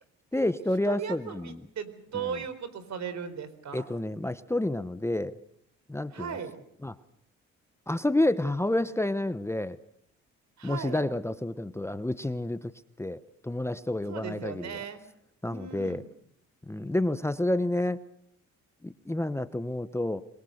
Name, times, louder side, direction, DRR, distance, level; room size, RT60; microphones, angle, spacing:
voice 1, 0.3-1.6 2.1-2.4 3.7-5.4 5.9-6.4 6.8-7.0 7.9-9.8 10.6-12.7 13.0-14.8 15.4-16.0 16.7-18.0 18.8-20.2, left 1 dB, 10° left, 13 dB, 1.0 m, -29 dB
voice 2, 0.9-3.9 6.1-6.5 10.6-11.0 14.1-15.0 15.5-16.1, right 7 dB, 65° right, 13 dB, 4.1 m, -37 dB
27.0 x 22.5 x 6.6 m, 0.72 s
cardioid pair, 90°, 30 cm